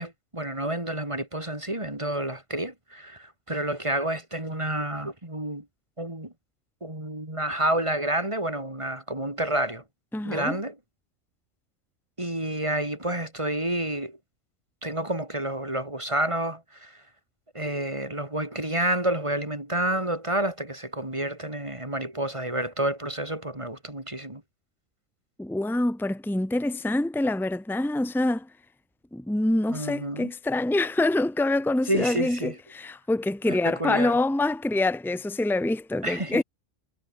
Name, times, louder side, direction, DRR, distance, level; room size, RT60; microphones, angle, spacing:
voice 1, 0.0-5.7 6.0-6.3 6.8-9.8 10.2-10.7 12.2-14.2 14.8-17.0 17.5-24.4 29.7-30.3 31.9-32.5 33.5-34.2 36.0-36.4, right 1 dB, 25° right, 3.8 m, -29 dB
voice 2, 10.1-10.6 25.4-28.5 29.1-36.4, left 2 dB, ahead, 1.1 m, -26 dB
omnidirectional pair, 1.3 m